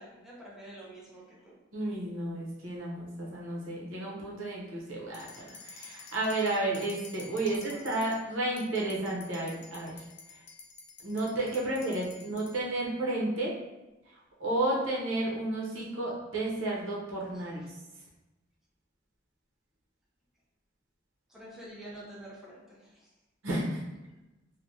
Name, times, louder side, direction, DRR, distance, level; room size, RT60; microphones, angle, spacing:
voice 1, 0.0-1.6 7.3-8.2 11.7-12.0 17.3-17.4 21.3-23.1, right 1 dB, ahead, -6 dB, 0.6 m, -48 dB
voice 2, 1.7-10.0 10.3-10.4 11.0-13.5 14.1-17.6 23.4-23.8, right 2 dB, 85° right, -4 dB, 0.8 m, -32 dB
sound 1, 5.1-8.2 8.6-12.6, left 4 dB, 60° left, 0.4 m, -50 dB
3.3 x 2.2 x 2.6 m, 1.0 s
head